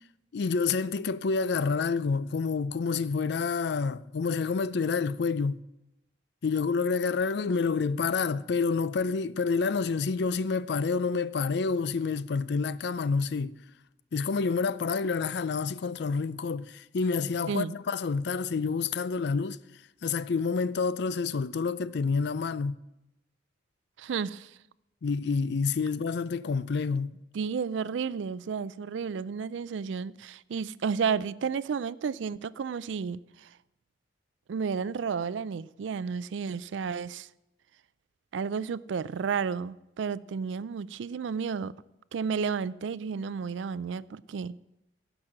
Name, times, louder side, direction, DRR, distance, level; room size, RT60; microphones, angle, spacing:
voice 1, 0.3-5.6 6.4-13.6 14.1-19.6 20.0-22.7 25.0-27.1, left 4 dB, 60° left, 0.4 m, -28 dB
voice 2, 24.0-24.5 27.3-33.5 34.5-37.3 38.3-41.7 42.1-44.6, right 6 dB, 75° right, 0.4 m, -32 dB
16.5 x 6.1 x 6.0 m
head